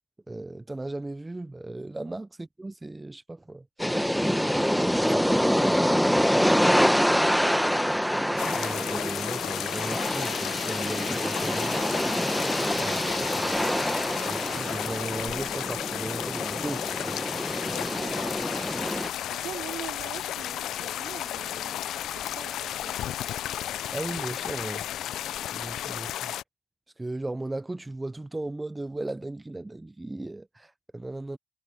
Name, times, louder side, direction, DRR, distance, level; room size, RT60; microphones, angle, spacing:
voice 1, 0.3-3.9 4.2-4.8 8.6-11.9 12.8-13.6 14.2-17.8 23.9-24.9 25.5-26.3 27.0-31.4, right 2 dB, 15° right, 0.4 m, -37 dB
sound 1, 3.8-19.1, equal, ahead, 1.0 m, -26 dB
voice 2, 5.8-6.5 17.8-23.0, right 11 dB, 75° right, 3.4 m, -45 dB
sound 2, 8.4-26.4, left 12 dB, 80° left, 0.3 m, -33 dB
sound 3, 18.9-26.1, left 8 dB, 60° left, 2.8 m, -47 dB
cardioid pair, 90°, 0 cm